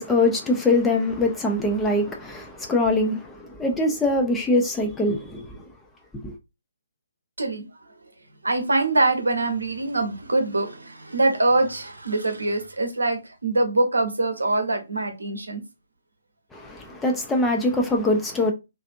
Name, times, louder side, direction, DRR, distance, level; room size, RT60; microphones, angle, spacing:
voice 1, 0.0-5.6 6.2-6.3 16.5-18.5, left 2 dB, 5° left, 0.4 m, -23 dB
voice 2, 8.4-15.6, right 2 dB, 70° right, 0.8 m, -23 dB
2.5 x 2.4 x 2.4 m
figure-of-eight pair, 135°, 0 cm